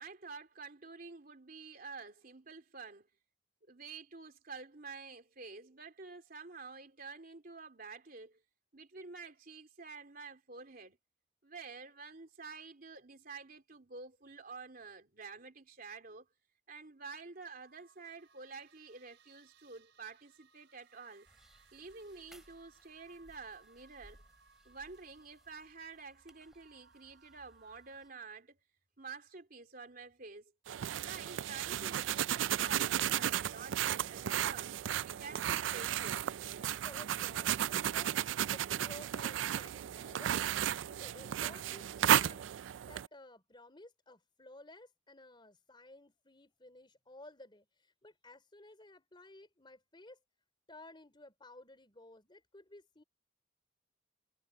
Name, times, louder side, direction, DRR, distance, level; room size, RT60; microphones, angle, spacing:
voice 1, 0.0-3.1 3.7-8.4 8.7-11.0 11.4-16.3 16.7-21.3 21.7-24.2 24.6-28.6 29.0-30.5 31.0-34.8 35.1-36.3, right 4 dB, 50° right, 3.1 m, -49 dB
sound 1, 17.6-28.4, right 5 dB, 70° right, 5.5 m, -66 dB
sound 2, 21.2-28.1, equal, ahead, 7.9 m, -65 dB
sound 3, 30.7-43.1, right 11 dB, 90° right, 0.4 m, -34 dB
voice 2, 36.6-40.4 40.9-50.2 50.7-53.0, left 2 dB, 25° left, 3.8 m, -55 dB
head